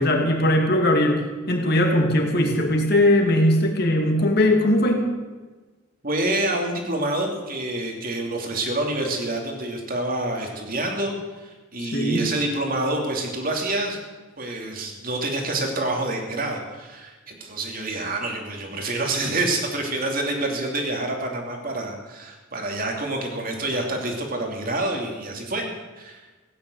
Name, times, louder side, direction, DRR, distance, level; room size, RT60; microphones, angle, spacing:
voice 1, 0.0-5.0 11.8-12.3, left 1 dB, 50° left, 2 dB, 2.5 m, -20 dB
voice 2, 6.0-14.0 14.4-25.7 26.0-26.2, right 2 dB, 45° right, 2 dB, 2.8 m, -27 dB
16.0 x 9.7 x 8.0 m, 1.3 s
head